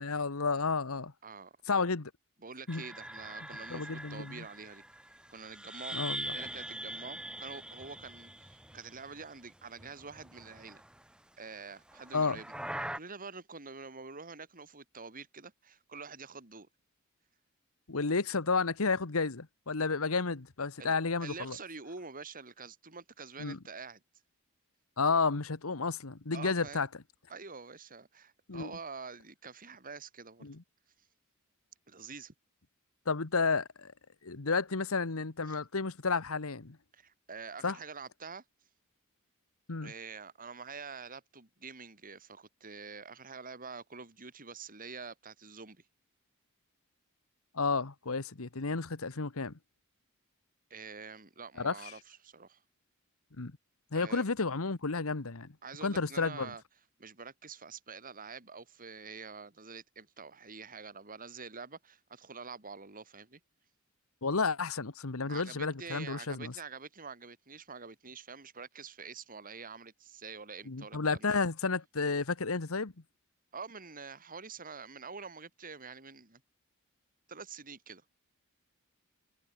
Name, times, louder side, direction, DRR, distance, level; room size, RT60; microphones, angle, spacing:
voice 1, 0.0-1.1 1.7-2.1 2.7-2.8 3.7-4.4 5.9-6.4 12.1-12.4 17.9-21.6 23.4-23.6 25.0-26.9 28.5-28.7 30.4-30.6 33.1-33.9 34.2-36.8 37.6-37.8 39.7-39.9 47.5-49.5 51.6-51.7 53.4-53.6 53.9-55.5 55.8-56.5 64.2-66.5 70.7-72.9, left 4 dB, 80° left, 1.3 m, -31 dB
voice 2, 1.2-1.5 2.4-4.8 5.3-10.8 11.4-12.5 12.9-16.7 20.8-20.9 21.2-24.0 26.3-26.9 27.3-30.6 31.9-32.3 35.5-35.6 36.9-38.4 39.8-45.8 50.7-52.6 53.9-54.3 55.6-56.6 57.0-63.4 65.3-71.4 73.5-76.4 77.3-78.0, right 5 dB, 40° right, 3.2 m, -46 dB
sound 1, 2.7-9.4 9.6-11.0 11.9-13.0, right 1 dB, 5° right, 2.8 m, -43 dB
head